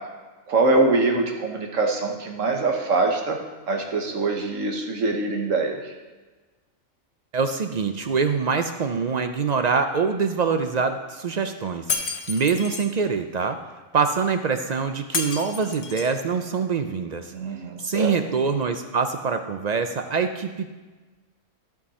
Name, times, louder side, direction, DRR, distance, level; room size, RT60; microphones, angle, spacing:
voice 1, 0.5-5.9 17.3-18.1, right 3 dB, 85° right, 2 dB, 1.6 m, -24 dB
voice 2, 7.3-11.8 12.3-13.6 13.9-17.3 17.9-20.7, right 5 dB, 55° right, 8 dB, 0.4 m, -24 dB
Shatter, 11.9-12.9 15.1-16.2, left 5 dB, 60° left, 1.1 m, -30 dB
14.0 x 6.0 x 4.2 m, 1.3 s
omnidirectional pair, 1.3 m